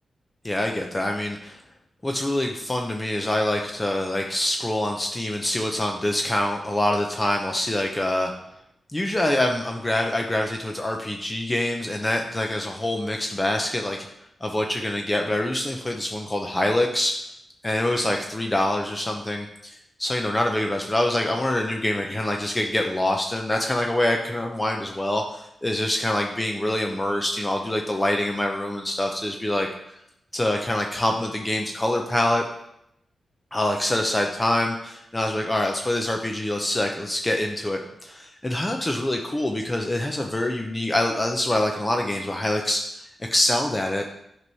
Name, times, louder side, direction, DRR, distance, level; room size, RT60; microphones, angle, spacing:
voice 1, 0.4-1.6 2.0-8.3 8.9-14.1 14.4-17.2 17.6-19.7 20.0-29.7 30.3-32.4 33.5-42.8 43.2-44.0, left 1 dB, 20° left, 2 dB, 0.7 m, -25 dB
8.0 x 3.1 x 5.5 m, 0.78 s
cardioid pair, 85°, 0 cm